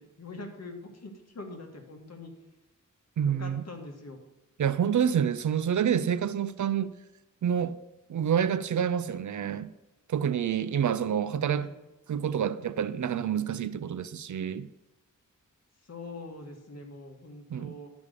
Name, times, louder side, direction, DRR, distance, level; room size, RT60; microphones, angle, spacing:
voice 1, 0.0-2.3 3.2-4.2 11.1-11.3 11.6-11.7 15.8-17.9, left 2 dB, 50° left, 1.6 m, -43 dB
voice 2, 3.2-3.6 4.6-6.9 7.4-7.8 8.1-9.7 10.1-11.7 12.1-14.7 17.5-17.7, right 8 dB, 65° right, 0.5 m, -28 dB
11.0 x 5.3 x 6.7 m
wide cardioid pair, 125°, 33 cm